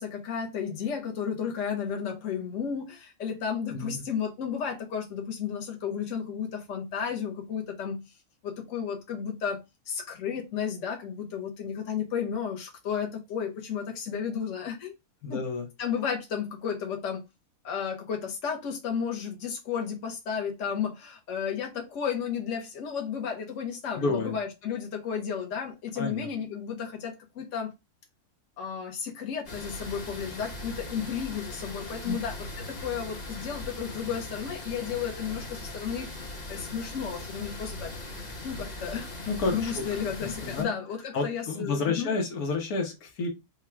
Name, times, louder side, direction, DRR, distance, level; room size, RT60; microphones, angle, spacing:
voice 1, 0.0-8.0 8.4-14.9 15.3-15.4 15.8-17.2 17.6-27.7 28.6-36.1 36.5-37.9 38.4-39.1 39.5-42.1, left 7 dB, 60° left, 1.3 m, -33 dB
voice 2, 15.2-15.7 24.0-24.3 26.0-26.3 32.0-32.2 39.3-39.8 40.2-40.7 41.1-43.3, left 3 dB, 90° left, 1.4 m, -30 dB
sound 1, 29.5-40.6, left 2 dB, 35° left, 0.9 m, -39 dB
3.6 x 2.3 x 4.3 m
omnidirectional pair, 1.5 m